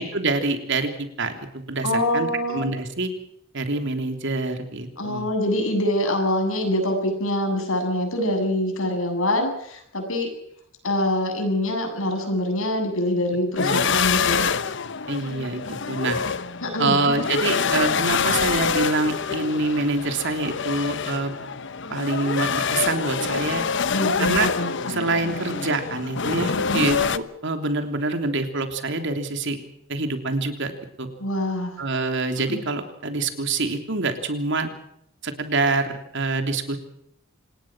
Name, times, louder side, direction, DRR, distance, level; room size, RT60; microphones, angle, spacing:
voice 1, 0.0-3.1 3.5-5.3 13.6-13.9 15.1-16.2 16.8-21.4 21.9-23.6 24.2-24.5 24.9-29.6 29.9-31.1 31.8-34.7 35.2-36.8, right 3 dB, 60° right, 6 dB, 3.3 m, -26 dB
voice 2, 1.8-2.7 5.0-10.3 10.8-14.5 16.6-17.0 23.9-24.7 26.5-26.9 31.2-31.7 32.5-32.6, left 1 dB, 75° left, 5 dB, 7.7 m, -24 dB
sound 1, 13.6-27.2, left 6 dB, 60° left, 1.0 m, -26 dB
27.0 x 19.5 x 6.2 m, 0.72 s
head